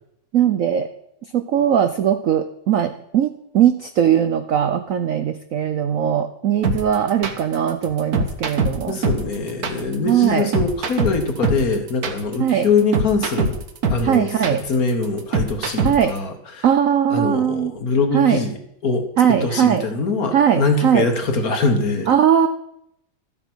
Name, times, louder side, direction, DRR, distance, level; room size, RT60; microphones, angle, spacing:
voice 1, 0.3-0.9 1.3-9.0 10.0-10.5 12.4-12.7 14.0-14.6 15.8-16.1 16.6-17.7 18.1-18.4 19.2-19.8 20.3-21.1 22.1-22.5, right 9 dB, 75° right, 9 dB, 0.7 m, -19 dB
sound 1, 6.6-16.2, right 3 dB, 50° right, 1.5 m, -23 dB
voice 2, 8.9-13.6 13.9-16.6 17.1-18.6 18.8-22.1, left 4 dB, 50° left, 6 dB, 1.7 m, -23 dB
13.0 x 9.1 x 6.2 m, 0.76 s
omnidirectional pair, 2.3 m